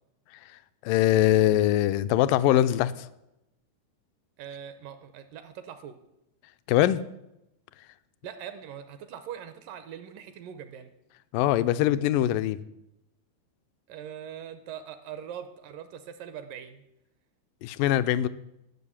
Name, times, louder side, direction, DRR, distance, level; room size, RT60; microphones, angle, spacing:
voice 1, 0.8-2.9 6.7-7.0 11.3-12.6 17.6-18.3, left 13 dB, 80° left, 13 dB, 2.0 m, -22 dB
voice 2, 4.4-6.0 8.2-10.9 13.9-16.8, right 9 dB, 75° right, 10 dB, 2.2 m, -42 dB
12.5 x 6.4 x 8.8 m, 0.86 s
omnidirectional pair, 4.3 m